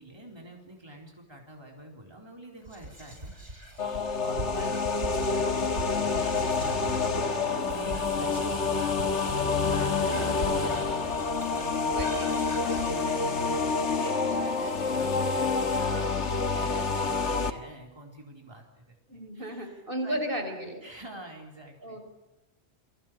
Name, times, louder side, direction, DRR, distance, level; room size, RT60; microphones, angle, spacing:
voice 1, 0.0-7.1 7.6-20.2 20.4-22.0, right 1 dB, 20° right, 1 dB, 4.3 m, -46 dB
Whispering, 2.6-15.1, right 1 dB, 75° right, 8.4 m, -41 dB
sound 1, 3.8-17.5, left 4 dB, 80° left, 1.9 m, -28 dB
voice 2, 9.7-10.5 11.9-12.3 19.1-20.8 21.8-22.0, right 1 dB, 50° right, 6 dB, 4.7 m, -35 dB
29.5 x 23.5 x 7.6 m, 0.96 s
omnidirectional pair, 1.2 m